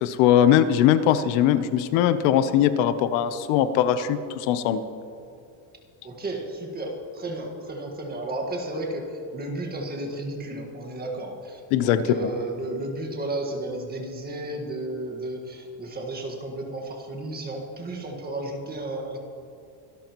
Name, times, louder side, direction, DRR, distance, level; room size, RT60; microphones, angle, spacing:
voice 1, 0.0-4.8 11.7-12.3, left 10 dB, 75° left, 11 dB, 0.9 m, -21 dB
voice 2, 6.0-19.2, right 1 dB, 20° right, 1 dB, 1.6 m, -33 dB
25.0 x 12.5 x 3.0 m, 2.6 s
cardioid pair, 175°, 50 cm